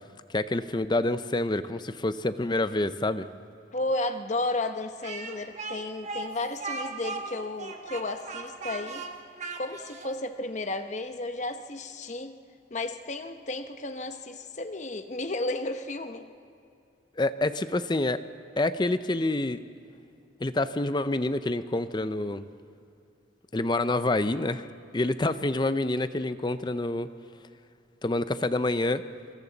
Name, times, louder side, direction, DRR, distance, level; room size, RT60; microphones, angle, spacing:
voice 1, 0.3-3.3 17.2-18.2 18.6-19.6 20.4-22.4 23.5-24.6 24.9-27.1 28.0-29.0, left 2 dB, 25° left, 12 dB, 0.5 m, -27 dB
voice 2, 3.7-9.1 9.5-12.4 12.7-16.2, left 2 dB, 40° left, 8 dB, 0.9 m, -33 dB
Speech, 5.0-10.1, right 4 dB, 35° right, 1.4 m, -37 dB
26.0 x 25.0 x 4.0 m, 2.5 s
head